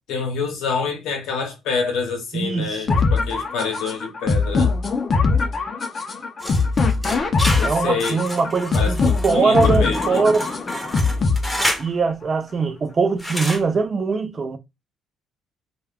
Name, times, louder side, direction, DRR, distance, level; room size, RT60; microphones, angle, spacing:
voice 1, 0.1-4.7 7.6-8.2 8.7-10.3, left 5 dB, 85° left, 0.8 m, -27 dB
voice 2, 2.3-3.0 7.6-10.5 11.8-14.6, right 4 dB, 40° right, 0.5 m, -22 dB
sound 1, 2.9-11.9, left 4 dB, 40° left, 0.5 m, -21 dB
sound 2, 6.4-11.9 13.2-13.6, equal, 5° left, 0.8 m, -29 dB
2.2 x 2.2 x 3.4 m
cardioid pair, 90°, 0 cm